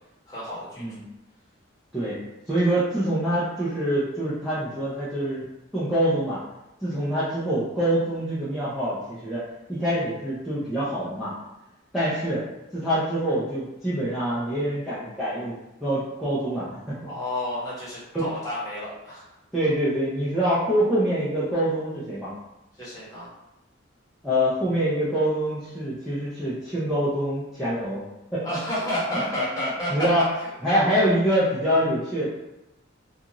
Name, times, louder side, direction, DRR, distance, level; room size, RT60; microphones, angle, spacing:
voice 1, 0.3-1.0 17.0-19.3 22.8-23.3 28.4-30.1 30.4-30.8, left 1 dB, 20° left, -9 dB, 1.0 m, -31 dB
voice 2, 2.5-5.4 5.7-6.4 6.8-11.3 11.9-12.5 12.7-15.5 15.8-17.1 18.1-18.3 19.5-22.3 24.2-28.0 28.3-28.5 29.1-29.5 29.9-30.2 30.6-32.3, equal, ahead, -11 dB, 0.5 m, -25 dB
2.5 x 2.4 x 2.9 m, 0.95 s
head